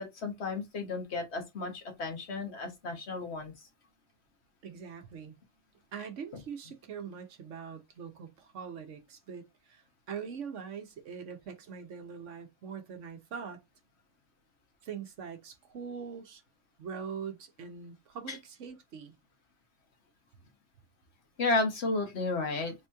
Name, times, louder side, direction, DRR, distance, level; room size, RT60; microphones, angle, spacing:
voice 1, 0.0-3.5 18.3-18.4 21.4-22.7, left 3 dB, 60° left, 1.3 m, -32 dB
voice 2, 4.6-5.3 5.9-9.8 10.1-13.6 14.8-16.4 16.8-19.1, right 6 dB, 75° right, 1.2 m, -42 dB
3.6 x 3.0 x 3.4 m
omnidirectional pair, 1.3 m